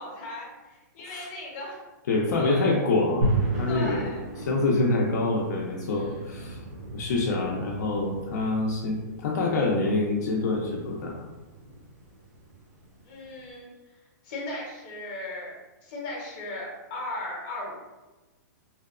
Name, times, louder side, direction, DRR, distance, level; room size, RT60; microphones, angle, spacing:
voice 1, 0.0-1.8 2.4-2.7 3.7-4.2 5.8-6.6 13.0-13.7 14.2-15.5 15.8-17.8, left 1 dB, 30° left, -3 dB, 0.8 m, -37 dB
voice 2, 2.1-4.0 4.4-6.6 6.9-11.2, left 2 dB, 65° left, -2 dB, 0.5 m, -26 dB
sound 1, 3.2-13.5, right 2 dB, 45° right, 0.6 m, -35 dB
2.7 x 2.1 x 2.4 m, 1.2 s
hypercardioid pair, 170°, 10 cm